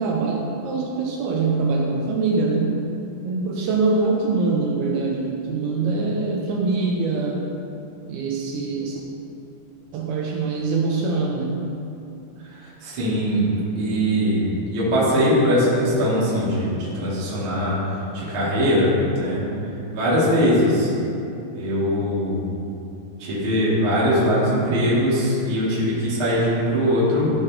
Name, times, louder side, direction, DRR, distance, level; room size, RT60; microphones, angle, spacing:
voice 1, 0.0-2.8 3.2-7.6 8.1-9.0 9.9-11.7, right 3 dB, 80° right, -1 dB, 2.4 m, -23 dB
voice 2, 12.4-17.8 18.1-19.4 19.9-20.9 21.5-22.4 23.2-27.3, equal, 40° right, -9 dB, 2.3 m, -21 dB
13.5 x 5.4 x 3.5 m, 2.7 s
omnidirectional pair, 4.8 m